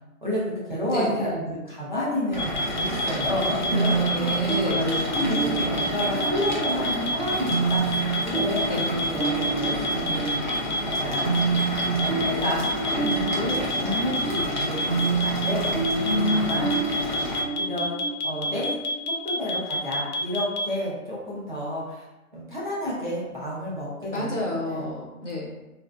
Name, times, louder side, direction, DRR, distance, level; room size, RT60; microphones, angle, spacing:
voice 1, 0.2-10.4 10.8-11.3 11.9-15.9 16.3-16.8 17.6-18.8 19.1-22.0 22.3-24.4 24.7-24.9, left 1 dB, 35° right, -7 dB, 0.5 m, -30 dB
voice 2, 0.9-1.3 4.0-4.8 8.7-8.8 16.0-16.7 24.1-25.5, left 1 dB, 55° left, -4 dB, 0.9 m, -28 dB
sound 1, 2.3-17.4, equal, 35° left, 0.5 m, -31 dB
sound 2, 2.4-20.7, left 1 dB, 80° left, 0.6 m, -28 dB
sound 3, 3.7-19.3, right 4 dB, 80° right, 0.9 m, -29 dB
3.0 x 2.5 x 2.2 m, 1.0 s
figure-of-eight pair, 150°, 44 cm